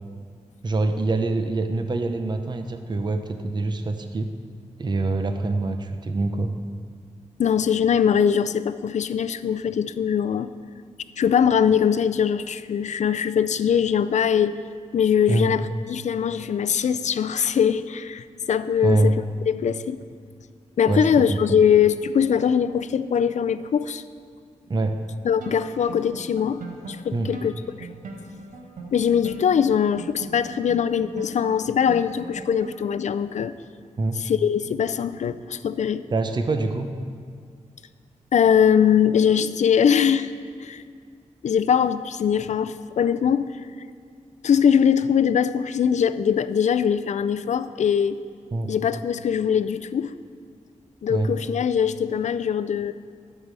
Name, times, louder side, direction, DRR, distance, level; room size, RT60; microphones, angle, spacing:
voice 1, 0.6-4.3 4.8-6.5 15.3-15.6 18.8-19.2 20.9-21.6 24.7-25.0 27.1-27.3 34.0-34.2 36.1-36.9 48.5-48.8 51.1-51.3, right 2 dB, 35° right, 7 dB, 0.7 m, -25 dB
voice 2, 7.4-10.5 11.2-14.6 14.9-20.0 20.8-24.0 25.2-27.5 27.8-27.9 28.9-33.5 34.2-36.1 38.3-40.3 40.6-40.8 41.4-43.5 44.4-48.2 48.7-50.1 51.0-52.9, left 8 dB, 65° left, 13 dB, 0.4 m, -22 dB
sound 1, 25.4-33.1, right 2 dB, 90° right, 1.4 m, -40 dB
12.0 x 5.5 x 7.5 m, 2.1 s
wide cardioid pair, 130°, 13 cm